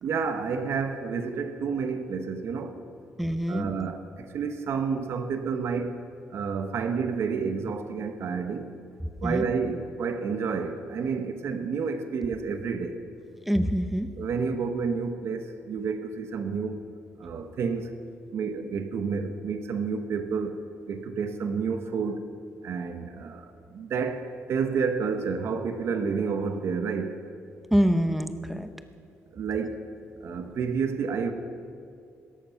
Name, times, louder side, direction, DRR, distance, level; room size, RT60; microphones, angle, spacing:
voice 1, 0.0-2.8 3.5-5.9 6.3-8.7 9.2-13.0 14.2-16.8 17.2-17.9 18.3-20.6 20.9-22.2 22.6-23.4 23.7-24.2 24.5-27.1 29.3-29.7 30.2-31.3, right 5 dB, 60° right, 8 dB, 1.1 m, -29 dB
voice 2, 3.2-3.7 9.2-9.4 13.5-14.1 27.7-28.7, equal, 5° right, 9 dB, 0.8 m, -25 dB
18.0 x 13.5 x 5.8 m, 2.4 s
cardioid pair, 155°, 5 cm